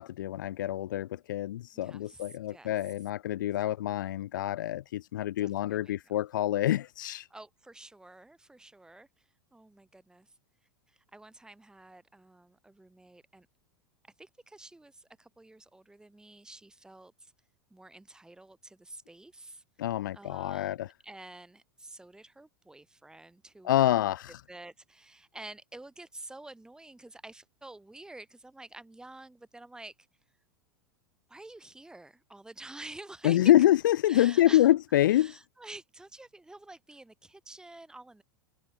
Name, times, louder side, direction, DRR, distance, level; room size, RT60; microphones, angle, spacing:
voice 1, 0.0-7.3 19.8-20.9 23.6-24.4 33.2-35.4, left 13 dB, 65° left, 0.9 m, -26 dB
voice 2, 1.7-2.7 3.4-3.5 5.4-5.9 7.3-9.1 9.5-10.3 10.9-13.5 14.2-17.3 17.7-19.6 20.1-24.1 24.5-30.1 31.3-33.5 34.1-34.7 35.1-38.2, right 2 dB, 5° right, 5.5 m, -49 dB
figure-of-eight pair, 90°, 11 cm